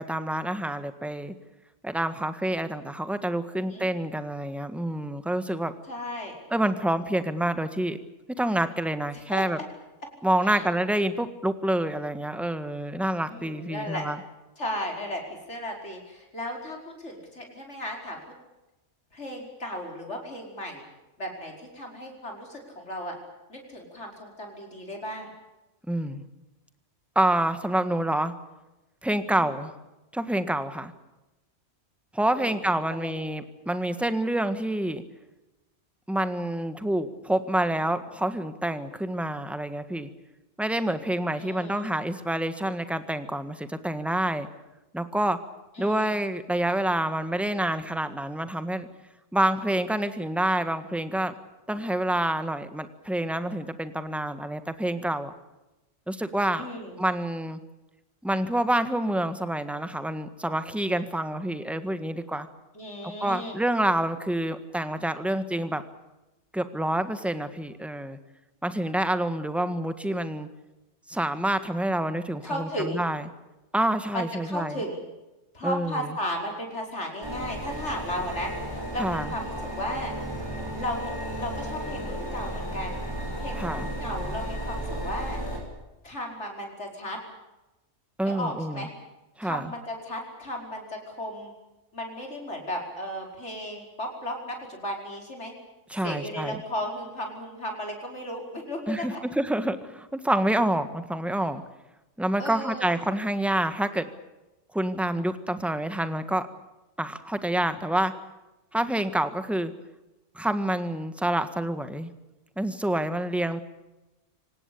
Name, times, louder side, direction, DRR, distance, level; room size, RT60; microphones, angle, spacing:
voice 1, 0.0-1.3 1.8-5.7 6.5-8.0 8.4-9.6 10.2-14.2 25.9-26.2 27.1-28.3 29.0-29.7 30.1-30.9 32.1-35.0 36.1-40.1 40.6-44.5 44.9-45.4 45.8-48.9 49.3-51.3 51.7-55.3 56.1-56.7 57.0-57.6 58.2-62.5 63.2-65.8 66.5-68.2 68.6-70.5 71.1-73.2 73.7-74.8 75.6-76.1 79.0-79.3 83.6-83.9 88.2-88.9 89.4-89.7 95.9-96.6 98.9-101.6 102.2-104.0 104.7-106.4 107.0-108.1 108.7-109.7 110.3-112.1 112.6-113.6, right 1 dB, ahead, 10 dB, 1.5 m, -27 dB
voice 2, 3.6-3.9 5.9-6.4 9.1-9.6 10.4-10.6 13.3-14.1 14.6-18.2 19.1-20.8 21.2-23.1 23.5-25.3 29.3-29.5 32.4-33.1 41.4-41.9 45.7-46.2 56.6-57.0 62.7-63.6 72.4-73.0 74.1-75.0 75.5-80.1 80.7-81.1 81.4-83.0 83.4-85.4 86.0-87.2 88.2-88.9 89.4-91.5 91.9-95.5 96.0-99.2 102.4-102.9, equal, 70° left, 1 dB, 5.4 m, -35 dB
sound 1, 77.2-85.6, equal, 20° right, 6.0 m, -34 dB
25.5 x 18.5 x 8.5 m, 1.0 s
omnidirectional pair, 1.2 m